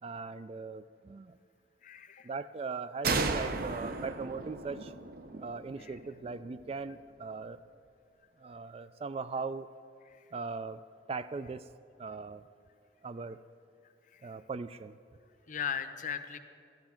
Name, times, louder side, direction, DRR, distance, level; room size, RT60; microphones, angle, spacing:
voice 1, 0.0-1.4 2.2-4.9 5.4-7.6 8.4-9.7 10.3-10.8 11.1-11.7 12.0-12.4 13.0-13.4 14.2-15.0, right 4 dB, 30° right, 13 dB, 0.3 m, -39 dB
voice 2, 1.8-2.3 5.8-5.9 14.1-14.2 15.5-16.4, left 7 dB, 45° left, 9 dB, 0.7 m, -37 dB
sound 1, 3.0-6.6, right 3 dB, 55° right, 0.7 m, -35 dB
12.0 x 11.5 x 5.8 m, 2.4 s
head